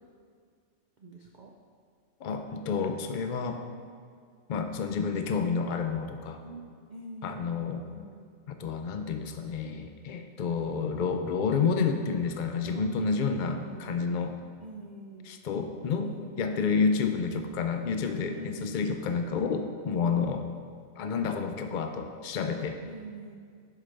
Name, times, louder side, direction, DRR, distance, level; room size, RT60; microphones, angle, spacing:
voice 1, 1.0-1.5 6.4-8.2 12.6-13.0 13.3-14.0 14.6-15.3 16.0-16.6 18.3-19.0 19.9-20.5 22.9-23.4, right 2 dB, 65° right, 1 dB, 0.4 m, -44 dB
voice 2, 2.2-3.6 4.5-6.4 7.2-7.8 8.5-14.3 15.2-16.1 16.4-20.4 21.0-22.8, left 5 dB, 90° left, 6 dB, 0.4 m, -29 dB
11.0 x 5.1 x 3.3 m, 2.1 s
omnidirectional pair, 1.4 m